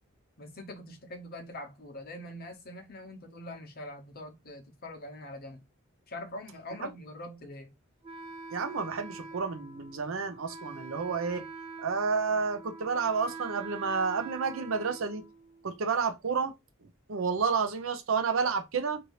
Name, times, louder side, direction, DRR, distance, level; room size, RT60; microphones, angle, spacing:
voice 1, 0.4-5.6 6.1-7.7, left 1 dB, 45° left, 0.9 m, -43 dB
Wind instrument woodwind instrument, 8.0-15.8, right 4 dB, 30° right, 0.8 m, -44 dB
voice 2, 8.5-11.5 11.8-15.2 15.6-16.5 17.1-19.0, right 5 dB, 70° right, 0.6 m, -30 dB
2.7 x 2.6 x 3.0 m
head